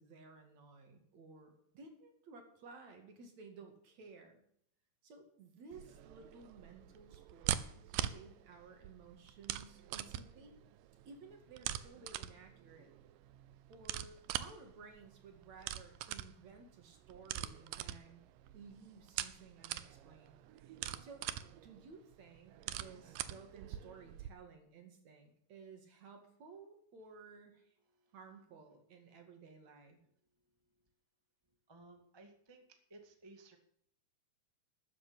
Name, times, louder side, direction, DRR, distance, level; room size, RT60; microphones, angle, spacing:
voice 1, 0.0-4.4 5.0-10.6 11.1-12.9 13.7-18.2 18.5-20.4 21.0-21.2 21.6-27.8 28.1-30.0, right 4 dB, 55° right, 5 dB, 3.3 m, -56 dB
sound 1, 5.7-24.3, right 12 dB, 85° right, 2.4 m, -44 dB
voice 2, 31.7-33.6, right 2 dB, 10° right, 4 dB, 1.3 m, -58 dB
13.5 x 8.6 x 8.7 m, 0.71 s
omnidirectional pair, 3.8 m